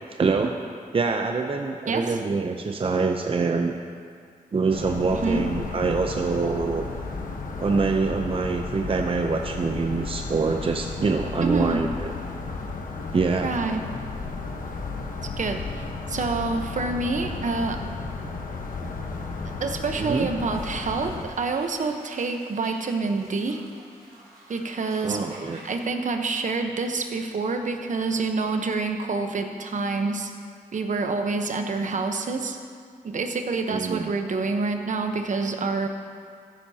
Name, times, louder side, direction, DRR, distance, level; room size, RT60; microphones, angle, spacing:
voice 1, 0.2-0.5 0.9-3.8 4.5-6.9 7.6-12.1 13.1-13.5 20.0-20.3 25.0-25.6 33.7-34.1, right 4 dB, 40° right, 4 dB, 0.6 m, -25 dB
voice 2, 1.9-2.2 5.1-5.4 11.4-11.8 13.4-13.8 15.4-17.8 19.6-23.6 24.5-25.2 25.6-30.3 30.7-32.6 33.0-35.9, right 3 dB, 60° right, 5 dB, 1.0 m, -27 dB
sound 1, 4.7-21.2, left 3 dB, 70° left, 1.2 m, -34 dB
sound 2, 20.5-25.8, right 1 dB, 85° right, 3.1 m, -49 dB
14.5 x 13.0 x 2.9 m, 2.2 s
cardioid pair, 70°, 15 cm